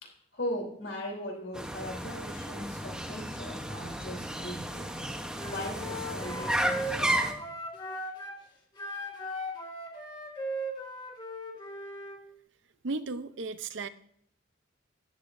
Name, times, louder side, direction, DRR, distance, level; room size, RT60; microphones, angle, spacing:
voice 1, 0.0-5.1 5.5-7.2, left 1 dB, 70° left, 0 dB, 3.4 m, -39 dB
sound 1, 1.5-7.3, right 1 dB, 5° right, 0.8 m, -33 dB
Wind instrument woodwind instrument, 5.4-8.4 8.8-12.2, equal, 25° left, 1.7 m, -38 dB
voice 2, 12.8-13.9, right 3 dB, 70° right, 12 dB, 0.6 m, -35 dB
13.5 x 10.5 x 2.6 m, 0.67 s
head